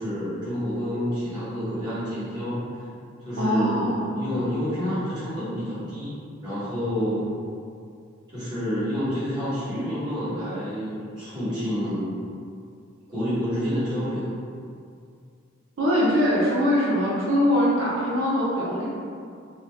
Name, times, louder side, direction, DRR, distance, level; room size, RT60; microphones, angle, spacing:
voice 1, 0.0-2.6 3.2-6.2 6.4-7.3 8.3-12.1 13.1-14.3, equal, 20° right, -13 dB, 1.1 m, -28 dB
voice 2, 3.4-4.2 11.5-11.6 15.8-18.8, equal, 65° right, -8 dB, 0.6 m, -22 dB
2.6 x 2.2 x 3.2 m, 2.3 s
head